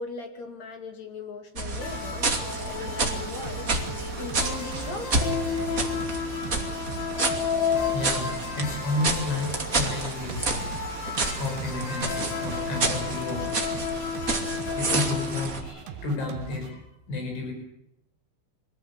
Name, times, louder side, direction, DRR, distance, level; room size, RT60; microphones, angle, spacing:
voice 1, 0.0-3.7 4.2-5.3, left 4 dB, 45° left, 5 dB, 3.0 m, -39 dB
sound 1, 1.6-15.6, right 3 dB, 25° right, 2.0 m, -30 dB
sound 2, 1.8-15.5, left 6 dB, 65° left, 4.8 m, -33 dB
sound 3, 3.0-16.7, right 9 dB, 65° right, 2.6 m, -41 dB
voice 2, 7.9-10.7 11.4-13.8 14.2-17.5, left 2 dB, 80° left, 2 dB, 7.8 m, -32 dB
23.5 x 17.5 x 8.6 m, 0.82 s
omnidirectional pair, 5.4 m